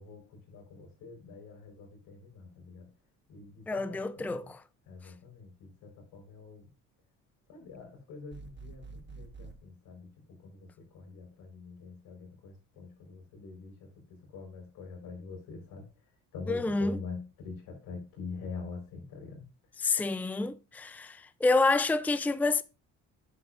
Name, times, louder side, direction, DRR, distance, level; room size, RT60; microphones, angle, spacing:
voice 1, 0.0-2.9 3.3-4.5 4.9-6.7 7.5-15.9 16.3-19.4 19.7-19.8, left 4 dB, 85° left, 4.5 m, -45 dB
voice 2, 3.7-4.6 16.5-17.0 19.8-22.6, left 3 dB, 5° left, 0.5 m, -28 dB
sound 1, 8.3-9.6, right 4 dB, 35° right, 1.3 m, -47 dB
11.0 x 8.2 x 2.5 m
supercardioid pair, 75°, 33 cm